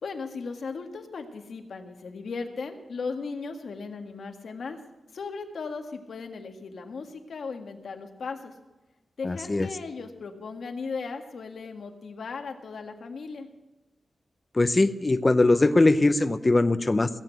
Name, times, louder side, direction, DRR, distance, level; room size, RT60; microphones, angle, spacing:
voice 1, 0.0-4.8 5.1-8.5 9.2-13.5, left 4 dB, 70° left, 5 dB, 1.7 m, -37 dB
voice 2, 9.2-9.7 14.5-17.1, left 2 dB, 25° left, 11 dB, 0.7 m, -21 dB
18.0 x 8.5 x 8.1 m, 1.1 s
wide cardioid pair, 135°, 0 cm